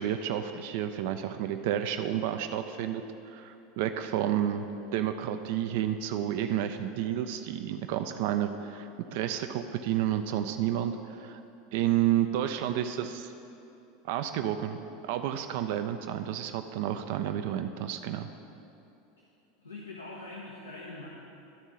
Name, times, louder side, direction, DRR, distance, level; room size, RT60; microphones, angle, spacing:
voice 1, 0.0-4.7 4.9-11.4 11.7-13.3 14.1-18.3, right 11 dB, 55° right, 8 dB, 0.4 m, -30 dB
voice 2, 19.6-21.1, left 2 dB, 80° left, -3 dB, 0.9 m, -43 dB
11.5 x 4.4 x 6.1 m, 2.8 s
figure-of-eight pair, 80°, 0 cm